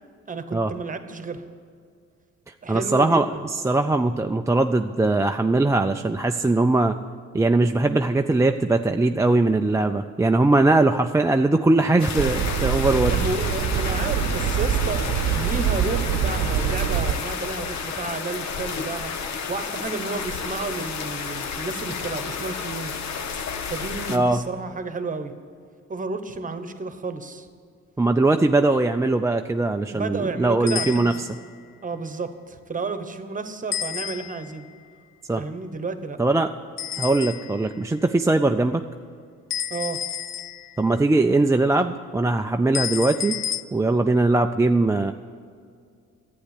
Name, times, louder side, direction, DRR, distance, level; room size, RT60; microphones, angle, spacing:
voice 1, 0.3-1.4 2.6-3.5 13.1-22.9 23.6-25.3 25.9-27.5 29.9-31.2 31.8-34.6 35.4-36.2 39.7-40.0, right 3 dB, 25° right, 9 dB, 1.1 m, -31 dB
voice 2, 2.7-7.0 7.3-13.1 24.1-24.4 28.0-31.1 35.3-35.4 36.2-36.5 37.0-38.8 40.8-43.3 43.7-45.1, right 2 dB, 10° right, 5 dB, 0.4 m, -20 dB
sound 1, 12.0-24.2, left 5 dB, 65° left, 1.1 m, -31 dB
sound 2, 12.1-17.1, right 9 dB, 85° right, 0.8 m, -24 dB
sound 3, 30.7-31.5 33.7-34.6 36.8-37.7 39.5-40.9 42.7-43.6, left 9 dB, 45° left, 0.5 m, -31 dB
11.5 x 8.8 x 8.3 m, 2.2 s
cardioid pair, 90°, 30 cm